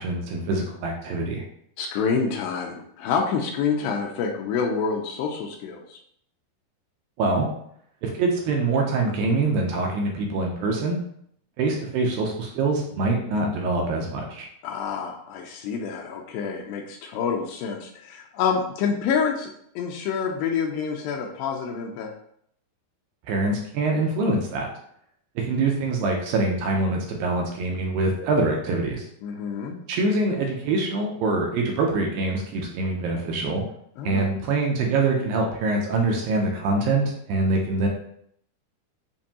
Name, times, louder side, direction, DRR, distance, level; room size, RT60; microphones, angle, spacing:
voice 1, 0.0-1.4 7.2-7.5 8.0-11.0 11.6-14.5 23.3-24.7 25.4-29.1 29.9-33.6 34.0-37.9, right 3 dB, 80° right, 0 dB, 2.2 m, -24 dB
voice 2, 1.8-6.0 14.6-22.1 29.2-29.8 34.0-34.2, left 6 dB, 90° left, 1 dB, 2.0 m, -27 dB
7.2 x 2.6 x 2.8 m, 0.68 s
omnidirectional pair, 4.6 m